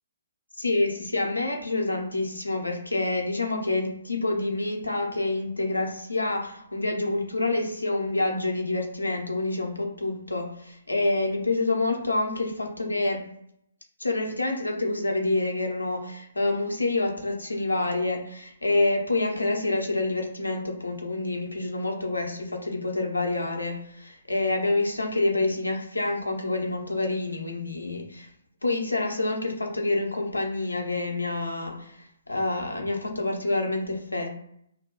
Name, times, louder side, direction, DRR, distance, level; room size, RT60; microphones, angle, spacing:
voice 1, 0.6-13.2 14.0-28.3 28.6-34.3, left 2 dB, 80° left, 2 dB, 0.7 m, -27 dB
2.1 x 2.1 x 2.9 m, 0.72 s
figure-of-eight pair, 130°, 0 cm